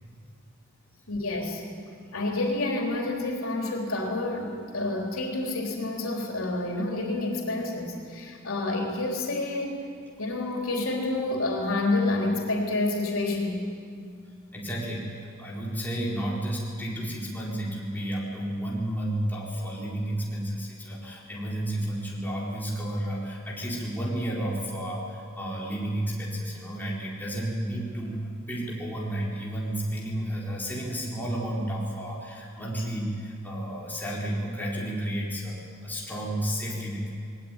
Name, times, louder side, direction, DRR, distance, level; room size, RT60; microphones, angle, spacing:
voice 1, 1.1-1.6 2.1-9.9 10.2-13.6, left 2 dB, 90° left, 0 dB, 3.8 m, -28 dB
voice 2, 14.5-28.2 28.5-37.1, right 1 dB, 10° left, -5 dB, 4.2 m, -32 dB
20.0 x 19.0 x 9.2 m, 2.3 s
head